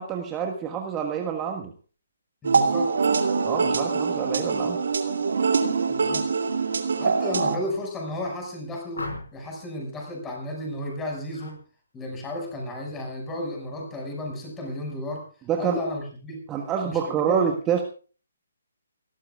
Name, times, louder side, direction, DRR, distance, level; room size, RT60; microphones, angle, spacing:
voice 1, 0.0-1.7 3.4-4.8 15.5-15.8 16.5-17.8, right 8 dB, 15° right, 3 dB, 1.5 m, -27 dB
voice 2, 2.4-2.9 5.9-6.3 7.0-11.6 11.9-15.3 15.6-16.5 16.8-17.5, left 1 dB, 10° left, 0 dB, 6.1 m, -33 dB
sound 1, 2.4-7.6, right 5 dB, 60° right, 2.4 m, -24 dB
sound 2, 8.9-9.6 11.3-11.6 12.0-12.4, left 2 dB, 70° left, 5.6 m, -37 dB
29.0 x 13.5 x 2.4 m, 0.39 s
figure-of-eight pair, 140°, 0 cm